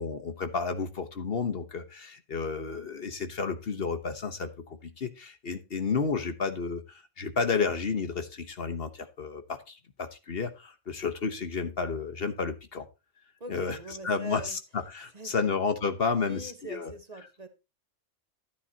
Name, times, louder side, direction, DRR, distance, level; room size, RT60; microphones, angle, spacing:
voice 1, 0.0-12.9 13.5-13.8 14.0-14.6 14.9-16.9, left 5 dB, 55° left, 1.3 m, -31 dB
voice 2, 13.4-14.6 15.1-15.6 16.2-17.5, right 2 dB, 35° right, 1.3 m, -43 dB
11.5 x 9.3 x 2.9 m
omnidirectional pair, 1.2 m